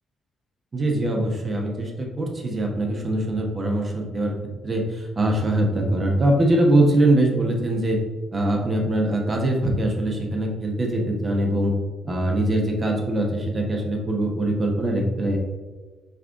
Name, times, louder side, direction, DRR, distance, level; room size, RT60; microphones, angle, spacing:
voice 1, 0.7-4.3 4.6-8.0 8.3-11.7 12.0-15.4, right 1 dB, 35° right, 1 dB, 1.0 m, -22 dB
4.7 x 3.1 x 3.6 m, 1.3 s
cardioid pair, 90°, 0 cm